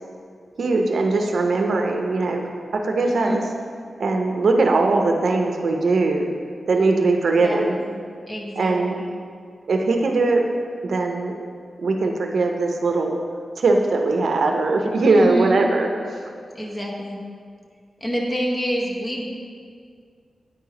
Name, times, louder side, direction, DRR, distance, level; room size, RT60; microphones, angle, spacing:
voice 1, 0.6-2.4 2.7-3.4 4.0-6.3 6.7-7.8 8.6-9.0 9.7-10.5 10.8-11.3 11.8-13.2 13.6-16.2, right 3 dB, 70° right, 2 dB, 0.6 m, -20 dB
voice 2, 3.0-3.4 7.4-8.0 8.3-9.1 15.1-15.6 16.5-17.2 18.0-19.3, equal, 20° left, -2 dB, 1.0 m, -27 dB
9.0 x 3.1 x 4.7 m, 2.1 s
wide cardioid pair, 125°, 0 cm